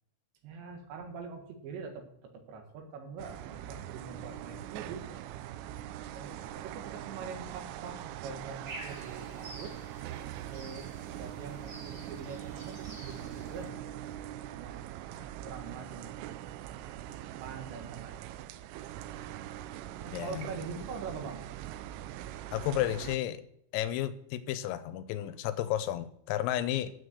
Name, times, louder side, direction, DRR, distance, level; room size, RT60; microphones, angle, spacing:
voice 1, 0.4-5.1 6.1-9.8 10.5-13.9 14.5-16.1 17.4-18.3 20.0-21.4, right 5 dB, 65° right, 4 dB, 3.5 m, -44 dB
sound 1, 3.2-23.2, right 12 dB, 80° right, 3.0 m, -42 dB
sound 2, 8.7-13.7, right 1 dB, 30° right, 3.2 m, -49 dB
voice 2, 20.1-20.5 22.5-23.4 23.7-26.9, left 12 dB, 85° left, 12 dB, 3.3 m, -32 dB
9.5 x 6.6 x 7.9 m, 0.75 s
omnidirectional pair, 6.0 m